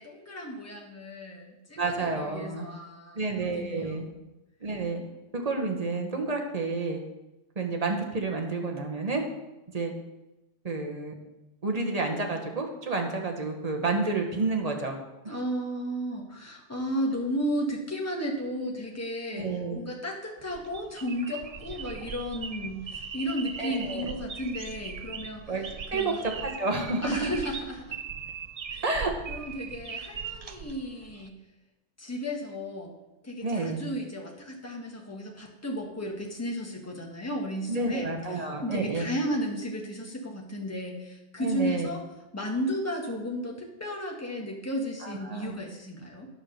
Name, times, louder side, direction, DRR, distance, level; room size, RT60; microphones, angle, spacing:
voice 1, 0.0-4.2 15.3-19.5 19.7-25.4 25.9-26.2 27.0-28.0 28.7-28.8 29.3-31.3 32.0-32.9 33.2-42.0 42.3-46.3, equal, 15° left, 0 dB, 1.3 m, -34 dB
voice 2, 1.8-2.7 3.1-4.0 4.6-5.0 5.3-7.0 7.6-9.2 9.7-9.9 10.6-11.1 11.6-15.0 15.2-15.3 19.3-19.8 23.6-24.1 25.5-25.6 25.9-27.3 28.8-29.1 33.4-33.8 37.7-39.1 41.4-41.9 45.0-45.5, right 3 dB, 35° right, 3 dB, 1.2 m, -30 dB
sound 1, 20.4-31.3, right 6 dB, 60° right, 0.3 m, -40 dB
9.6 x 4.7 x 6.5 m, 0.99 s
omnidirectional pair, 1.2 m